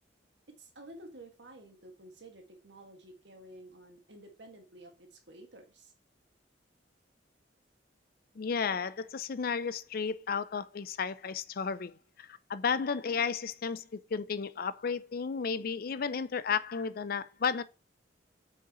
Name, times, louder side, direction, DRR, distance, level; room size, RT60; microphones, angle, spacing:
voice 1, 0.6-5.9, right 1 dB, 70° right, 2.0 m, -52 dB
voice 2, 8.4-17.6, left 6 dB, 55° left, 0.5 m, -33 dB
7.9 x 4.9 x 3.0 m
head